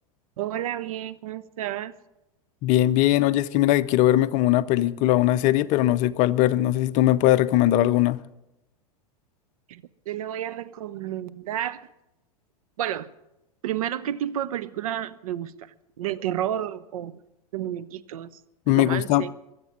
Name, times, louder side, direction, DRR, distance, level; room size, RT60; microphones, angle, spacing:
voice 1, 0.4-1.9 9.7-11.8 12.8-13.1 13.6-17.2 17.5-18.4 18.7-19.3, right 11 dB, 65° right, 0.8 m, -31 dB
voice 2, 2.6-8.2 18.7-19.2, left 14 dB, 40° left, 0.6 m, -20 dB
22.5 x 8.1 x 7.3 m
figure-of-eight pair, 95°, 20 cm